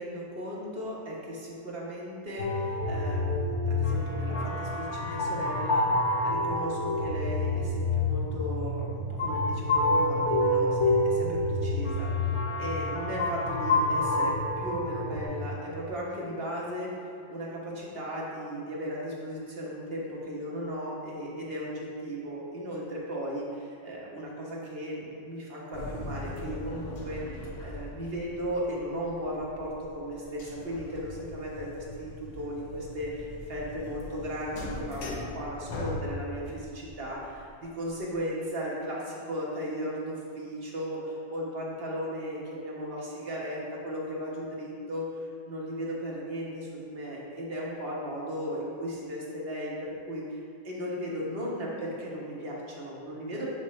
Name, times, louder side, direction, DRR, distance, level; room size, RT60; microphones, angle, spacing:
voice 1, 0.0-12.1 12.6-53.5, equal, 50° right, -4 dB, 1.5 m, -36 dB
sound 1, 2.4-15.2, left 2 dB, 70° left, 1.2 m, -28 dB
sound 2, 25.7-38.2, left 2 dB, 85° left, 1.3 m, -41 dB
7.2 x 6.1 x 3.2 m, 2.4 s
omnidirectional pair, 1.3 m